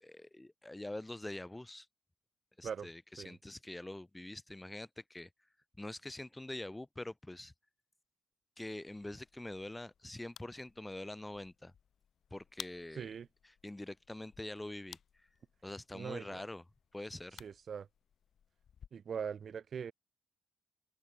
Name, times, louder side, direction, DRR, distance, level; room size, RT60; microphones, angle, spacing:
voice 1, 0.0-1.9 2.6-5.3 5.8-7.5 8.6-11.7 12.3-13.1 13.6-15.0 15.6-16.6 16.9-17.4, left 1 dB, 10° left, 1.1 m, -45 dB
sound 1, 8.9-18.9, left 8 dB, 55° left, 1.1 m, -57 dB
voice 2, 12.9-13.3 15.9-16.4 17.4-17.9 18.9-19.9, right 7 dB, 50° right, 0.3 m, -41 dB
cardioid pair, 75°, 0 cm